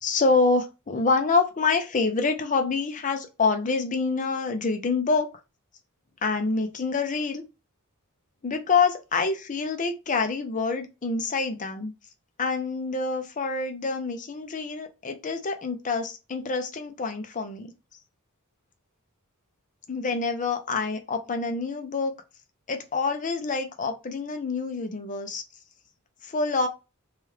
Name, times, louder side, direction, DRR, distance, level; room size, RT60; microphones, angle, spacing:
voice 1, 0.0-5.3 6.2-7.4 8.4-11.9 12.4-17.7 19.9-22.1 22.7-25.4 26.2-26.7, left 4 dB, 35° left, 0.6 m, -26 dB
3.0 x 2.4 x 3.2 m
head